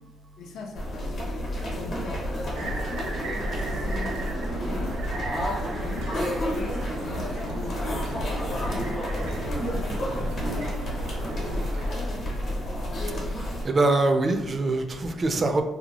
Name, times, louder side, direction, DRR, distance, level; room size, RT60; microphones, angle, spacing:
voice 1, 0.4-3.1 3.5-5.0 5.3-9.0 9.4-10.7, left 3 dB, 70° left, 2 dB, 0.5 m, -41 dB
sound 1, 0.7-13.6, equal, 55° left, 0.9 m, -30 dB
sound 2, 2.5-11.9, right 2 dB, 85° right, 0.5 m, -37 dB
Walk footsteps, 3.7-3.9 4.8-5.0 5.3-6.8 7.0-7.2 7.6-7.8 8.1-8.3 8.6-8.9 9.2-9.4 10.1-10.8, left 1 dB, 30° left, 0.6 m, -43 dB
voice 2, 13.2-15.6, right 2 dB, 35° right, 6 dB, 0.3 m, -24 dB
2.7 x 2.2 x 2.9 m, 1.1 s
cardioid pair, 100°, 0 cm